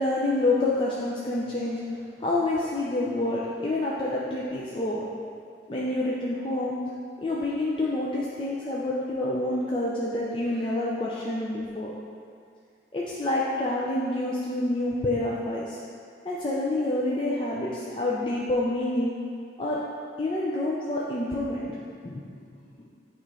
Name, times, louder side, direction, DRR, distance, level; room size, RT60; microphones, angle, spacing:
voice 1, 0.0-1.8 2.2-5.0 5.7-6.7 7.2-11.9 12.9-15.8 16.2-19.1 19.6-19.8 20.2-21.8 22.0-22.2, left 2 dB, 30° left, -6 dB, 0.5 m, -27 dB
8.9 x 3.1 x 4.8 m, 2.3 s
head